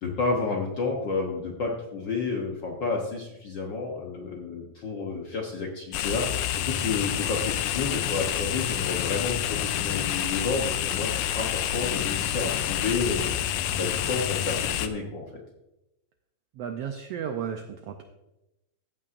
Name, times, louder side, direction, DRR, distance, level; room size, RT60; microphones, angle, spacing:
voice 1, 0.0-13.3 13.8-15.4, left 4 dB, 75° left, 0 dB, 1.0 m, -30 dB
sound 1, 5.9-14.9, left 11 dB, 90° left, 2.1 m, -28 dB
voice 2, 16.5-18.0, right 8 dB, 85° right, 5 dB, 1.4 m, -34 dB
15.0 x 8.5 x 2.5 m, 0.94 s
omnidirectional pair, 3.5 m